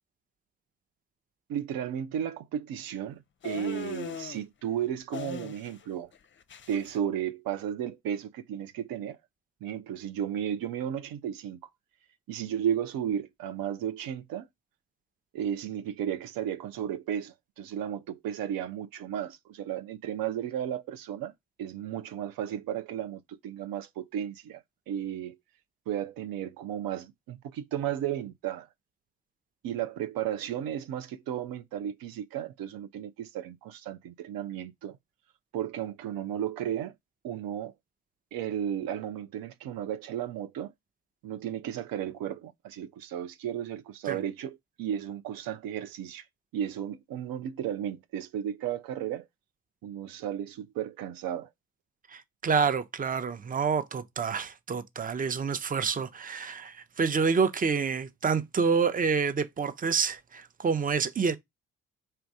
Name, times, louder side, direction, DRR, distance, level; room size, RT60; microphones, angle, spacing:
voice 1, 1.5-6.1 6.7-9.2 9.6-11.6 12.3-14.5 15.3-21.3 21.6-25.4 25.9-28.7 29.6-35.0 35.5-36.9 37.2-37.7 38.3-40.7 41.2-46.2 46.5-49.3 49.8-51.5, right 10 dB, 70° right, 0.6 m, -34 dB
sound 1, 3.4-4.4 5.1-5.9 6.1-6.9, left 7 dB, 35° left, 0.6 m, -40 dB
voice 2, 52.1-61.4, right 5 dB, 25° right, 0.6 m, -28 dB
4.4 x 2.6 x 4.6 m
supercardioid pair, 50°, 36 cm